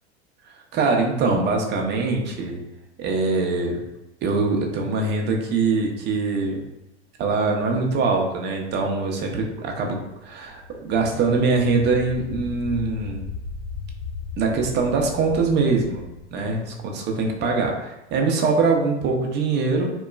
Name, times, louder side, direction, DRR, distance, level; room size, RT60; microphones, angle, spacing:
voice 1, 0.7-2.6 3.0-3.8 4.2-6.6 7.2-13.2 14.4-16.0 16.3-19.9, right 4 dB, 30° right, 1 dB, 0.5 m, -23 dB
sound 1, 10.2-17.1, left 4 dB, 30° left, 0.4 m, -37 dB
2.9 x 2.2 x 2.3 m, 0.96 s
hypercardioid pair, 100°, 35 cm